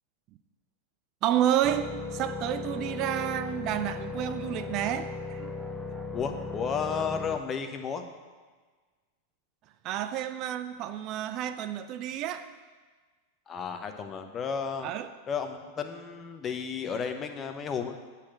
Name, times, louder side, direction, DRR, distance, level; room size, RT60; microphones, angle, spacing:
voice 1, 1.2-5.5 9.8-12.5 14.8-15.1, right 11 dB, 40° right, 10 dB, 0.4 m, -30 dB
sound 1, 1.6-7.4, left 3 dB, 5° right, 0.9 m, -37 dB
voice 2, 6.1-8.0 13.5-14.9 15.3-18.0, left 6 dB, 25° left, 6 dB, 1.0 m, -33 dB
8.8 x 5.8 x 7.6 m, 1.4 s
figure-of-eight pair, 90°, 0 cm